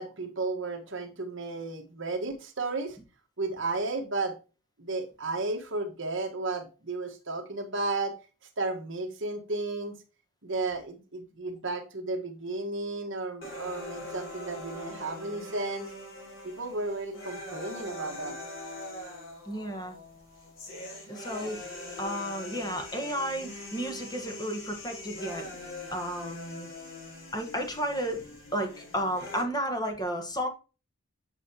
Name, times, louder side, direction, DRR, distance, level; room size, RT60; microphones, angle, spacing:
voice 1, 0.0-3.0 3.4-4.3 4.8-8.1 8.6-10.0 10.4-15.9 16.4-18.4, right 3 dB, 55° right, 4 dB, 1.5 m, -33 dB
sound 1, 13.4-29.4, left 1 dB, 60° left, 3.3 m, -42 dB
voice 2, 19.5-19.9 21.1-21.6 22.0-25.5 25.9-26.7 27.3-28.2 28.5-30.5, equal, 15° left, 4 dB, 1.4 m, -32 dB
8.8 x 5.7 x 2.9 m, 0.32 s
head